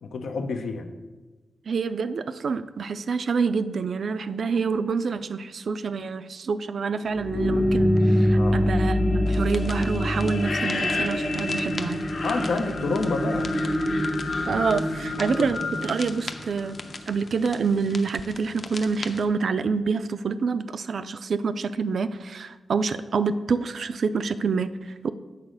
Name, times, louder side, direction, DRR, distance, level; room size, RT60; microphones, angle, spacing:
voice 1, 0.0-0.9 8.3-8.6 12.2-13.5 15.4-15.5, left 3 dB, 85° left, 6 dB, 0.7 m, -28 dB
voice 2, 1.7-12.0 14.5-16.8 17.1-25.1, right 5 dB, 60° right, 13 dB, 0.4 m, -27 dB
sound 1, 7.1-16.9, left 1 dB, 65° left, 1.4 m, -25 dB
sound 2, 9.3-19.3, left 3 dB, 45° left, 0.6 m, -41 dB
8.3 x 4.1 x 6.4 m, 1.2 s
wide cardioid pair, 130°, 0 cm